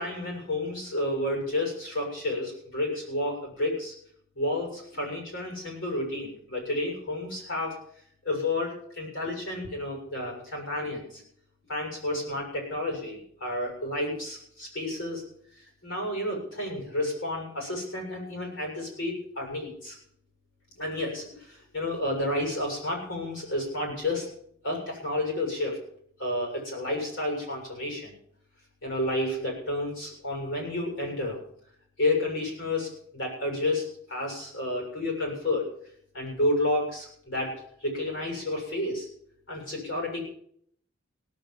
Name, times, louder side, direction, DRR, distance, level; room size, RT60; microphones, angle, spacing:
voice 1, 0.0-3.9 4.4-7.8 8.2-11.2 11.7-15.2 15.8-19.9 20.8-24.3 24.6-25.8 26.2-28.1 28.8-31.4 32.0-35.7 36.1-37.5 37.8-39.1 39.5-40.2, left 1 dB, 75° left, 0 dB, 7.4 m, -31 dB
17.5 x 7.7 x 7.1 m, 0.66 s
head